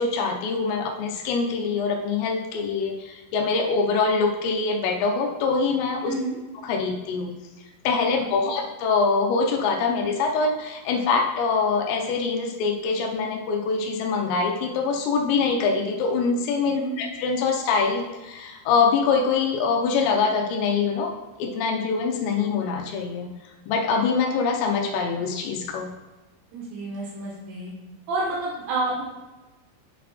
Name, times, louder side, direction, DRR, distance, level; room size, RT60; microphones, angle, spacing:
voice 1, 0.0-6.1 6.6-7.3 7.8-21.1 21.4-23.3 23.7-25.9, left 4 dB, 85° left, 1 dB, 2.6 m, -24 dB
voice 2, 6.1-6.4 8.4-8.5 16.7-17.0 26.5-27.7 28.1-29.0, right 2 dB, 75° right, -5 dB, 3.2 m, -29 dB
10.0 x 4.0 x 2.9 m, 1.1 s
omnidirectional pair, 5.7 m